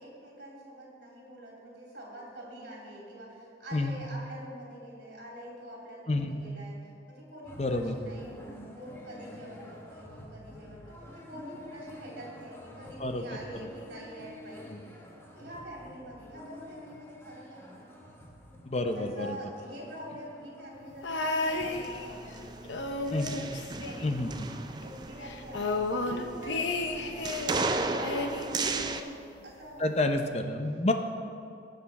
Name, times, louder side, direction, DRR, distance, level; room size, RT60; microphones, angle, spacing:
voice 1, 0.0-17.9 18.9-23.0 23.8-24.4 24.7-30.2, equal, 65° right, -3 dB, 3.1 m, -46 dB
voice 2, 6.1-6.4 7.6-8.0 13.0-13.4 14.7-14.9 18.6-19.4 23.1-23.4 24.0-24.5 29.8-30.9, left 2 dB, 35° left, 6 dB, 0.7 m, -29 dB
sound 1, 7.4-25.4 25.7-25.8 26.1-26.8, equal, 15° left, 1.1 m, -50 dB
sound 2, 21.0-22.3 22.6-24.6 24.8-24.9 25.2-27.6 28.0-29.3 30.2-30.3, left 2 dB, 90° left, 0.8 m, -33 dB
sound 3, 21.6-29.0, right 3 dB, 25° right, 0.4 m, -35 dB
17.5 x 6.8 x 4.2 m, 2.5 s
head